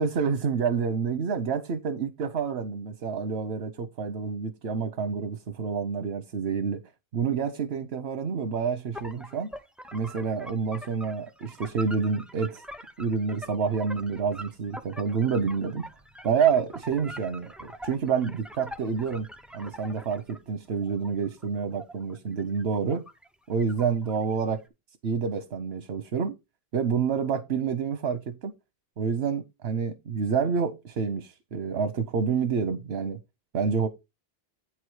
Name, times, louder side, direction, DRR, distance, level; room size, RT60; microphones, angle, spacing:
voice 1, 0.0-6.8 7.1-9.5 9.9-12.6 13.0-15.8 16.2-19.3 19.5-23.0 23.5-24.6 25.0-26.4 26.7-28.5 29.0-33.2 33.5-33.9, right 6 dB, 85° right, 1.1 m, -28 dB
sound 1, 8.9-20.4 20.8-23.3 23.6-24.4, equal, ahead, 0.6 m, -44 dB
8.7 x 4.7 x 4.7 m
omnidirectional pair, 1.0 m